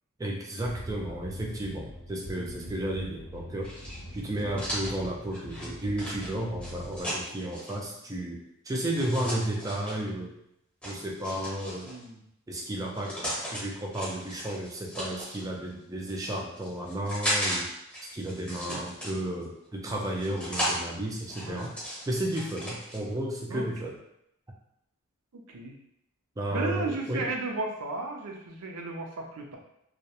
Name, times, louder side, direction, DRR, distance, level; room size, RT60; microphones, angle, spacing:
voice 1, 0.2-3.7 4.1-10.3 10.8-11.9 12.5-17.7 18.1-21.8 22.1-23.9 26.4-27.3, right 1 dB, 15° right, 0 dB, 0.3 m, -33 dB
sound 1, 0.6-7.0, equal, 65° left, 0.6 m, -43 dB
voice 2, 2.4-2.7 4.4-4.5 11.8-12.2 18.7-18.8 21.4-21.7 23.5-23.7 25.3-25.8 26.5-29.6, right 3 dB, 90° right, 1 dB, 0.5 m, -35 dB
sound 2, 3.6-7.8 8.9-10.0 10.8-12.0 12.7-13.6 13.9-15.4 16.1-17.6 17.9-19.4 20.0-20.8 21.3-23.0, equal, 5° left, 0.8 m, -35 dB
2.3 x 2.1 x 2.8 m, 0.78 s
head